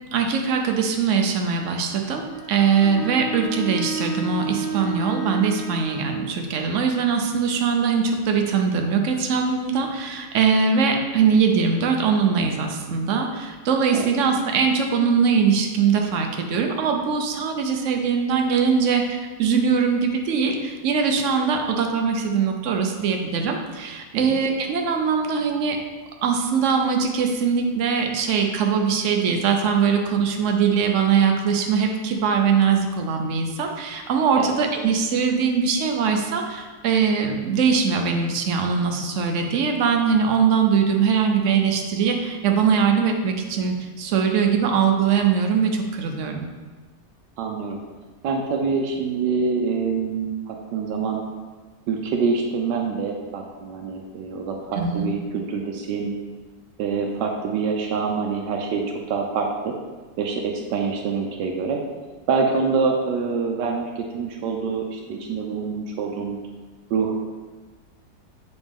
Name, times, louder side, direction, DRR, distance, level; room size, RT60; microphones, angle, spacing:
voice 1, 0.1-25.8 26.2-46.5 54.7-55.1, right 6 dB, 65° right, 3 dB, 0.8 m, -21 dB
Bowed string instrument, 2.3-6.2, right 4 dB, 30° right, 1.5 m, -31 dB
voice 2, 47.4-47.8 48.2-51.2 51.9-56.1 56.8-59.7 60.2-61.8 62.3-66.4 66.9-67.1, right 5 dB, 85° right, 1 dB, 1.3 m, -25 dB
6.9 x 4.0 x 3.6 m, 1.3 s
omnidirectional pair, 1.8 m